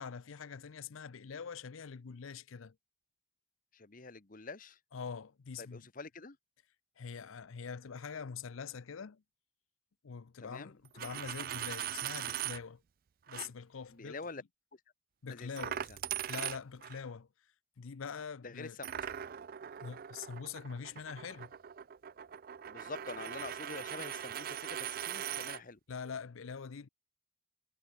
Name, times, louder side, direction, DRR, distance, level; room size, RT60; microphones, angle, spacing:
voice 1, 0.0-2.8 4.9-5.9 7.0-9.2 10.0-12.8 13.3-14.2 15.2-15.8 16.3-17.3 17.8-18.8 19.8-21.5 25.9-26.9, left 6 dB, 80° left, 0.6 m, -44 dB
voice 2, 3.7-4.8 5.6-6.4 10.4-10.8 13.9-14.4 14.7-14.8 15.3-16.0 18.4-19.1 22.7-25.8, left 3 dB, 40° left, 1.0 m, -46 dB
Coin (dropping), 10.9-12.6 13.3-13.5 15.6-17.0 18.8-25.6, right 10 dB, 45° right, 0.4 m, -40 dB
head